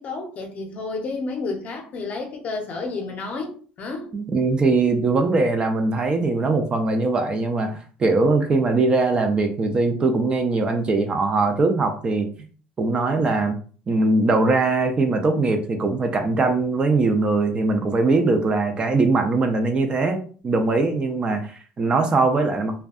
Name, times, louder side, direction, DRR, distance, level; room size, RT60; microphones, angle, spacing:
voice 1, 0.0-4.1, left 3 dB, 40° left, 0.6 m, -31 dB
voice 2, 4.1-12.3 12.8-13.5 13.9-22.8, right 3 dB, 25° right, 0.3 m, -21 dB
2.5 x 2.1 x 2.4 m
cardioid pair, 130°, 4 cm